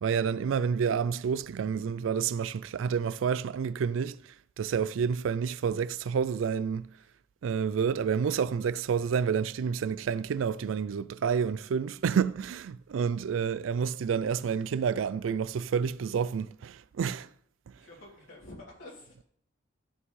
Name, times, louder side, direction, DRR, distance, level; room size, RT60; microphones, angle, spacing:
voice 1, 0.0-4.2 4.6-6.8 7.4-17.3, right 6 dB, 80° right, 0.3 m, -29 dB
voice 2, 17.8-19.2, left 1 dB, 85° left, 3.4 m, -49 dB
13.5 x 5.4 x 3.2 m
head